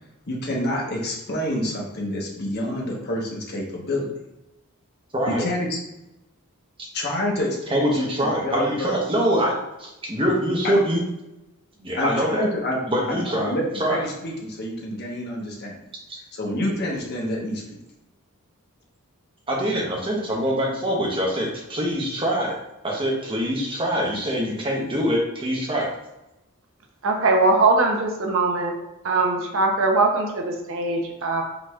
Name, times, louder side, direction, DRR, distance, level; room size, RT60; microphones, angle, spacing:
voice 1, 0.3-4.1 5.3-5.8 6.9-7.9 8.2-8.9 10.6-10.8 11.9-12.8 13.1-15.8 16.3-17.6, left 1 dB, 50° left, -2 dB, 1.1 m, -28 dB
voice 2, 5.1-5.5 7.7-11.0 11.8-12.5 12.9-14.0 19.5-22.6 22.8-25.9, equal, 25° right, -2 dB, 0.9 m, -24 dB
voice 3, 27.0-28.7 29.0-31.4, right 3 dB, 65° right, 2 dB, 0.8 m, -21 dB
5.0 x 4.0 x 2.4 m, 0.93 s
head